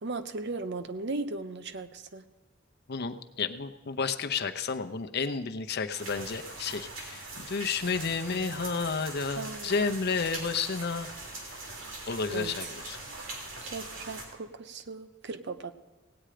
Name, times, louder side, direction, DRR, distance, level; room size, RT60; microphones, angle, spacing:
voice 1, 0.0-2.2 9.4-10.0 12.3-12.7 13.2-15.7, right 3 dB, 60° right, 10 dB, 0.8 m, -37 dB
voice 2, 2.9-11.4 12.1-13.0, left 5 dB, 55° left, 7 dB, 0.8 m, -31 dB
sound 1, 5.9-14.2, right 2 dB, 75° right, 3.2 m, -41 dB
17.5 x 8.9 x 5.0 m, 1.2 s
head